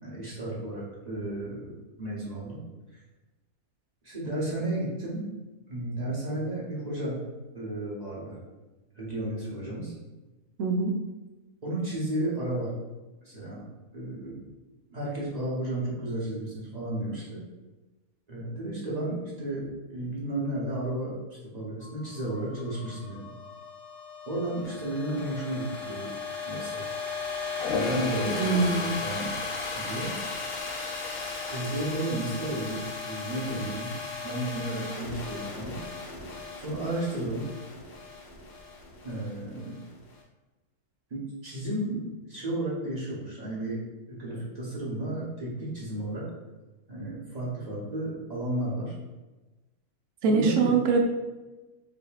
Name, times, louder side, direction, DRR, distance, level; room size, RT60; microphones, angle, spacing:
voice 1, 0.0-1.7 2.0-2.6 2.9-3.0 4.0-5.3 5.7-7.2 7.5-8.4 8.9-9.9 11.6-12.7 13.2-13.6 13.9-14.4 14.9-17.4 18.3-21.1 21.5-23.3 24.3-26.1 26.5-26.8 27.7-29.3 29.7-30.1 31.5-33.9 34.2-35.8 36.5-37.4 39.0-39.7 41.1-43.8 44.1-46.3 46.9-48.9 50.2-50.7, right 1 dB, 35° right, -7 dB, 0.9 m, -33 dB
voice 2, 10.6-11.0 28.4-29.0 50.2-51.0, right 4 dB, 65° right, 2 dB, 0.9 m, -23 dB
sound 1, 21.8-40.1, left 4 dB, 50° left, 0.8 m, -37 dB
Toilet flush, 27.5-32.7 33.1-33.5 37.9-38.0 38.3-39.0, left 3 dB, 80° left, 1.1 m, -37 dB
5.0 x 2.8 x 2.3 m, 1.1 s
omnidirectional pair, 1.6 m